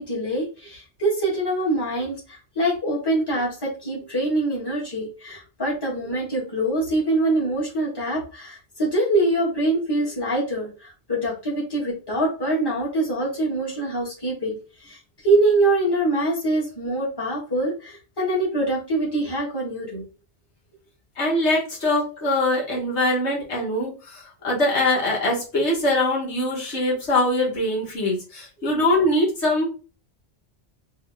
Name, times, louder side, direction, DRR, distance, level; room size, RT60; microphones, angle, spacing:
voice 1, 0.0-20.0, right 2 dB, 20° left, -5 dB, 1.4 m, -24 dB
voice 2, 21.2-29.7, left 1 dB, 80° left, -4 dB, 1.6 m, -23 dB
3.6 x 2.7 x 3.4 m, 0.35 s
omnidirectional pair, 1.1 m